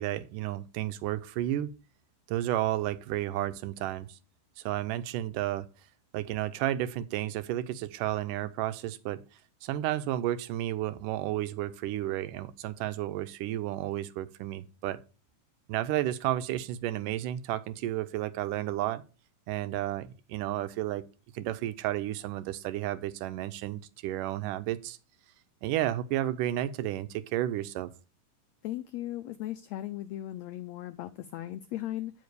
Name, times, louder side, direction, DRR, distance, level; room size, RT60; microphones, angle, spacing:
voice 1, 0.0-1.7 2.3-4.2 4.6-5.7 6.1-9.2 9.6-15.0 15.7-19.0 19.5-21.0 21.3-25.0 25.6-27.9, right 13 dB, 85° right, 2.2 m, -32 dB
voice 2, 28.6-32.1, left 14 dB, 85° left, 1.5 m, -37 dB
9.3 x 5.2 x 6.5 m
omnidirectional pair, 3.8 m